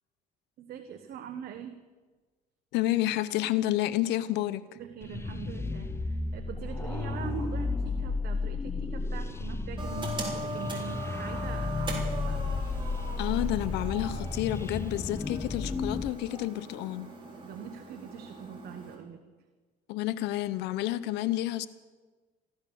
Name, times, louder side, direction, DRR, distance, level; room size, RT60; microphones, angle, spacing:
voice 1, 0.6-1.8 4.7-12.6 17.3-19.2, right 8 dB, 65° right, 7 dB, 1.1 m, -43 dB
voice 2, 2.7-4.7 13.2-17.1 19.9-21.7, left 14 dB, 90° left, 14 dB, 0.7 m, -30 dB
sound 1, 5.0-16.1, left 3 dB, 15° left, 0.6 m, -33 dB
sound 2, 9.8-19.0, right 2 dB, 30° right, 4.2 m, -40 dB
15.0 x 12.0 x 6.9 m, 1.3 s
cardioid pair, 110°, 17 cm